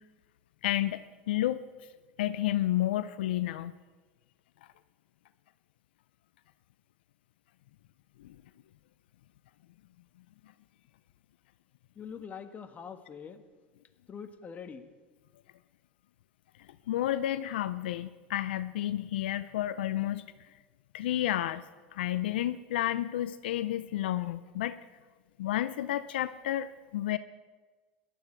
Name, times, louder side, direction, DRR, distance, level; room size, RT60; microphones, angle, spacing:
voice 1, 0.6-1.6 2.2-3.7 8.2-8.4 16.9-20.2 20.9-21.6 21.9-24.8 25.4-27.2, left 13 dB, 80° left, 13 dB, 0.5 m, -31 dB
voice 2, 11.9-13.4 14.1-14.8, left 6 dB, 30° left, 7 dB, 1.4 m, -43 dB
18.0 x 12.0 x 4.5 m, 1.3 s
hypercardioid pair, 100°, 5 cm